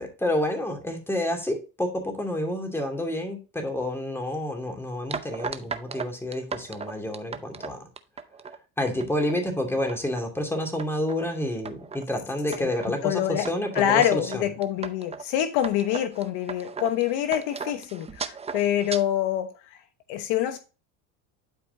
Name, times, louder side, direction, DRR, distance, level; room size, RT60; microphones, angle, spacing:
voice 1, 0.0-7.8 8.8-14.5, left 1 dB, 5° left, 2.5 m, -29 dB
sound 1, 5.1-8.6 9.0-9.4 9.8-10.3 10.8-11.2 11.7-12.0 12.5-13.0 13.5-19.0, right 5 dB, 15° right, 0.6 m, -37 dB
voice 2, 13.0-13.5 13.8-19.5 20.1-20.6, left 11 dB, 65° left, 1.2 m, -25 dB
11.5 x 4.8 x 2.7 m
supercardioid pair, 115°, 44 cm